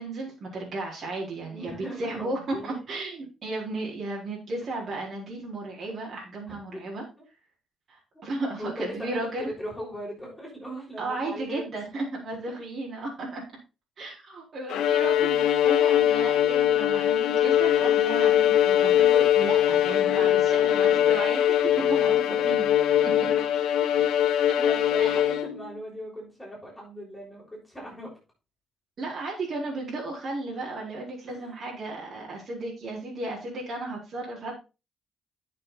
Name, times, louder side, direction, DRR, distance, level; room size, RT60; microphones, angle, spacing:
voice 1, 0.0-7.0 7.9-9.5 11.0-13.4 14.0-21.6 21.9-22.7 23.0-23.1 25.0-25.2 29.0-34.5, right 2 dB, 55° right, -3 dB, 4.4 m, -34 dB
voice 2, 1.4-2.8 6.7-6.8 8.6-11.8 19.8-21.3 21.7-22.5 23.0-23.3 24.6-28.2 31.3-31.5, equal, 5° left, -4 dB, 6.8 m, -39 dB
Bowed string instrument, 14.7-25.7, left 11 dB, 80° left, 1.3 m, -22 dB
11.0 x 6.8 x 4.1 m, 0.30 s
cardioid pair, 90°, 0 cm